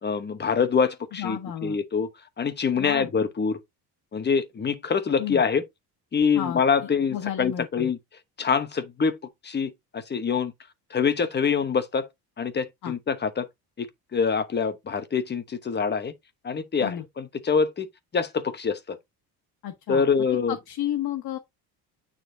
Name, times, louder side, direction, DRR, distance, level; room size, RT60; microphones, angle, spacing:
voice 1, 0.0-2.1 2.4-3.6 4.1-5.6 6.1-8.0 8.4-9.2 9.4-10.5 10.9-12.1 12.4-13.5 13.8-16.1 16.4-17.9 18.1-19.0 19.9-20.5, left 6 dB, 25° left, 1.0 m, -25 dB
voice 2, 1.1-1.8 2.8-3.1 5.2-5.4 6.3-6.6 7.1-7.9 12.8-12.9 16.8-17.0 19.6-20.0 20.5-21.4, left 11 dB, 60° left, 1.5 m, -32 dB
9.1 x 4.2 x 2.7 m
cardioid pair, 125°, 41 cm